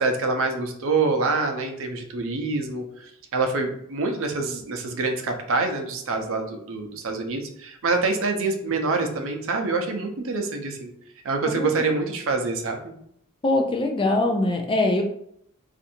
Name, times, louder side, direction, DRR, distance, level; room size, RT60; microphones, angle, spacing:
voice 1, 0.0-10.9 11.2-12.8, right 3 dB, 65° right, 4 dB, 0.6 m, -26 dB
voice 2, 11.5-11.8 13.4-15.0, left 2 dB, 25° left, 3 dB, 0.4 m, -22 dB
2.7 x 2.5 x 4.2 m, 0.69 s
head